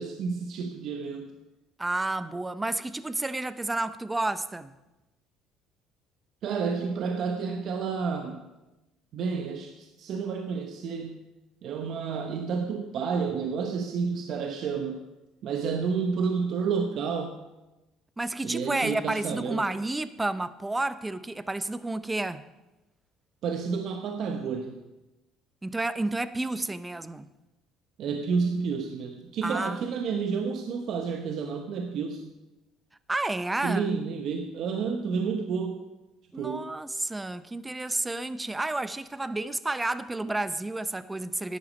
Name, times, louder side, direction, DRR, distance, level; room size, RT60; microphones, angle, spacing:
voice 1, 0.0-1.3 6.4-8.4 9.1-11.2 11.6-15.0 15.4-17.4 18.4-19.6 23.4-24.8 28.0-32.3 33.6-35.8 36.4-36.6, right 5 dB, 55° right, 1.0 m, -30 dB
voice 2, 1.8-4.7 18.2-22.5 25.6-27.3 29.4-29.9 33.1-33.9 36.3-41.6, right 2 dB, 10° right, 0.5 m, -31 dB
11.0 x 10.5 x 5.2 m
cardioid pair, 130°, 0 cm